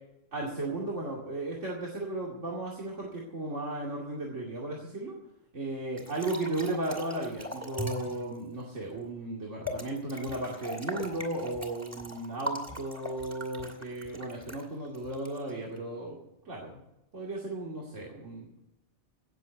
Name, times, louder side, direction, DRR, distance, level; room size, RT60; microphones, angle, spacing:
voice 1, 0.3-5.1 5.5-16.2 16.4-16.8 17.1-18.5, right 2 dB, 70° right, -3 dB, 2.7 m, -35 dB
sound 1, 6.0-8.2 9.6-15.8, equal, 10° right, 2.5 m, -40 dB
18.0 x 7.4 x 8.0 m, 0.88 s
omnidirectional pair, 1.3 m